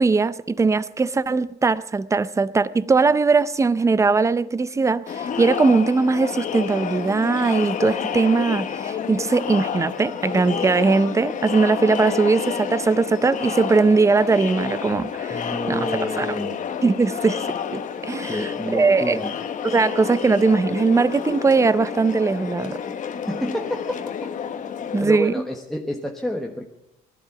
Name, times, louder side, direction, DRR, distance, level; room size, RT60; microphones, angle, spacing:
voice 1, 0.0-16.4 16.8-18.4 18.7-19.2 19.6-22.8 24.9-25.3, right 4 dB, 15° right, 0.6 m, -20 dB
Crowd, 5.1-25.0, left 7 dB, 50° left, 1.3 m, -29 dB
voice 2, 15.3-16.6 18.3-19.3 23.3-24.1 25.0-26.7, equal, ahead, 1.2 m, -29 dB
18.5 x 12.5 x 5.9 m
cardioid pair, 110°, 17 cm